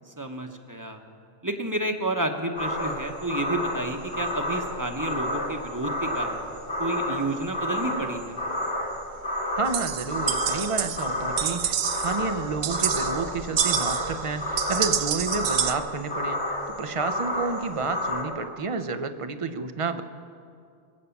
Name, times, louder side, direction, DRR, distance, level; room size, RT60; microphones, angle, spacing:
voice 1, 0.1-1.0 1.4-6.4 6.8-8.4, right 1 dB, 20° right, 4 dB, 1.0 m, -30 dB
sound 1, 2.6-18.2, left 1 dB, 60° left, 2.3 m, -31 dB
voice 2, 9.5-20.0, right 4 dB, 35° right, 10 dB, 0.7 m, -30 dB
sound 2, 9.7-15.7, right 9 dB, 70° right, 0.9 m, -28 dB
24.5 x 8.3 x 7.1 m, 2.3 s
omnidirectional pair, 1.1 m